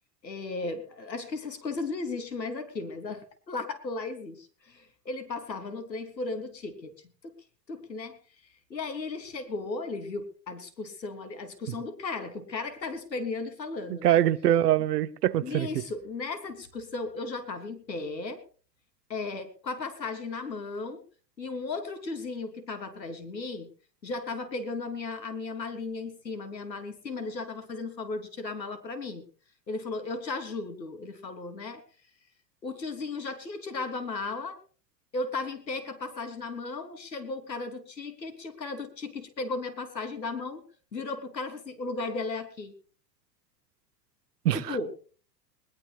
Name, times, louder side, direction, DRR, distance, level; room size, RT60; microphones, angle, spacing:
voice 1, 0.2-6.9 7.2-7.3 7.7-8.2 8.7-14.2 15.4-18.4 19.1-21.0 21.4-23.7 24.0-29.3 29.7-31.8 32.6-34.6 35.1-40.6 40.9-42.7 44.5-44.9, left 3 dB, 90° left, 3.4 m, -35 dB
voice 2, 13.9-15.7 44.4-44.8, right 12 dB, 70° right, 1.3 m, -24 dB
21.0 x 20.5 x 2.4 m
hypercardioid pair, 95°, 49 cm